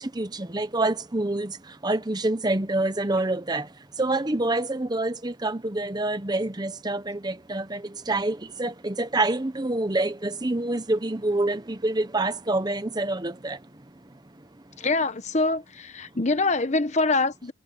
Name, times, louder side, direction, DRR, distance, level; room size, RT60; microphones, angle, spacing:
voice 1, 0.0-14.4, right 2 dB, 20° right, 0.8 m, -27 dB
voice 2, 14.8-17.5, left 3 dB, 35° left, 1.0 m, -24 dB
head